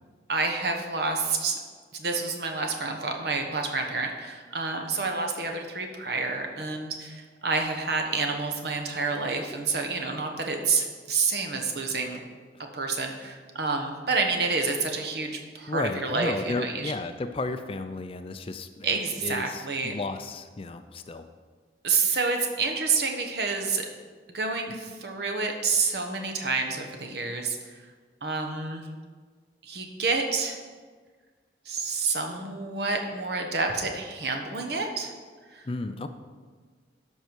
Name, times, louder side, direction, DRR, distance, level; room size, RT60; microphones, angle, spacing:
voice 1, 0.3-1.6 1.9-12.2 12.7-16.9 18.8-19.9 21.8-23.9 24.3-27.8 28.2-28.8 29.6-30.6 31.7-35.1 35.5-35.6, right 4 dB, 60° right, 3 dB, 1.2 m, -28 dB
voice 2, 15.7-21.3 35.6-36.1, left 3 dB, 30° left, 9 dB, 0.4 m, -33 dB
13.0 x 5.5 x 4.7 m, 1.5 s
head